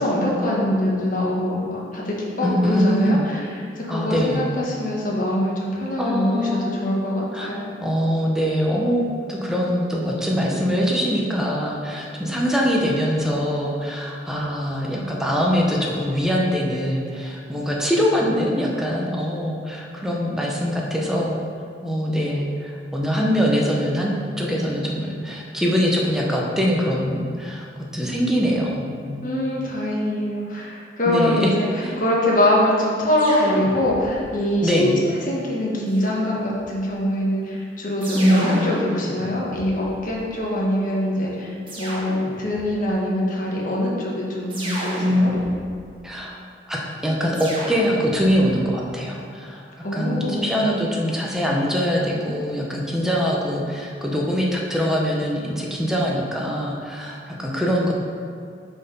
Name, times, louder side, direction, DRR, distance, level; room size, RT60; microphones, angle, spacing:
voice 1, 0.0-3.4 3.8-6.5 6.8-7.7 29.2-31.7 32.0-34.9 35.3-45.3 49.8-50.4, left 1 dB, 50° left, -4 dB, 1.6 m, -23 dB
voice 2, 2.4-3.2 3.9-4.5 6.0-6.7 7.3-7.5 7.8-21.4 21.8-29.2 31.1-32.0 34.6-35.0 38.1-38.8 45.0-45.5 46.0-46.4 46.7-49.6 49.9-57.9, equal, 5° right, -3 dB, 1.0 m, -23 dB
sound 1, 33.2-34.4 35.9-36.7 38.0-40.3 41.7-42.8 44.5-45.8 47.3-48.6, right 1 dB, 30° right, 1.5 m, -34 dB
6.9 x 4.8 x 5.4 m, 2.3 s
head